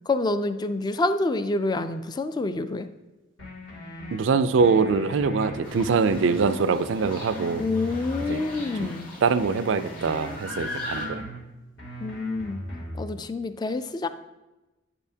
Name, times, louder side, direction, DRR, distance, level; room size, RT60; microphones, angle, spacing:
voice 1, 0.1-2.9 7.6-9.1 12.0-12.6 13.0-14.1, left 2 dB, 20° left, 11 dB, 0.3 m, -27 dB
sound 1, 3.4-4.2 4.6-6.6 7.0-9.0 9.4-11.4 11.8-13.0, equal, 85° left, 2.7 m, -38 dB
voice 2, 4.1-7.6 8.3-8.5 8.8-8.9 9.2-11.2, right 5 dB, 90° right, 13 dB, 0.4 m, -23 dB
sound 2, 5.6-11.1, left 2 dB, 50° left, 1.8 m, -39 dB
8.9 x 7.0 x 2.8 m, 1.1 s
head